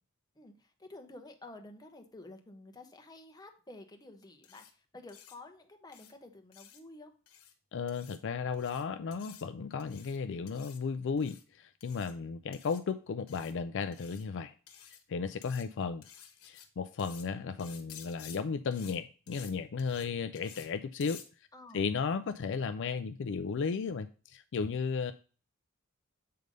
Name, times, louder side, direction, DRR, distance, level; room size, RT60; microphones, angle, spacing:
voice 1, 0.4-4.7 4.9-7.1 12.2-12.3 15.6-15.8 21.5-21.9 25.0-25.1, left 2 dB, 20° left, 5 dB, 1.0 m, -51 dB
sound 1, 4.4-4.7 5.1-5.4 5.9-6.1 6.5-6.8 7.3-7.5 7.9-8.2 8.5-8.8 9.1-9.4 9.8-10.2 10.5-10.8 11.2-11.4 11.8-12.1 12.5-12.8 13.3-13.5 13.9-14.2 14.7-15.0 15.4-15.6 16.0-16.7 17.0-17.3 17.6-18.4 18.7-19.0 19.3-19.5 19.8-20.1 20.4-20.7 21.0-21.3, left 9 dB, 85° left, 1.1 m, -52 dB
voice 2, 7.7-14.5 15.1-16.0 16.4-21.2 21.7-25.1, left 5 dB, 60° left, 10 dB, 0.4 m, -34 dB
7.7 x 3.4 x 5.2 m, 0.36 s
head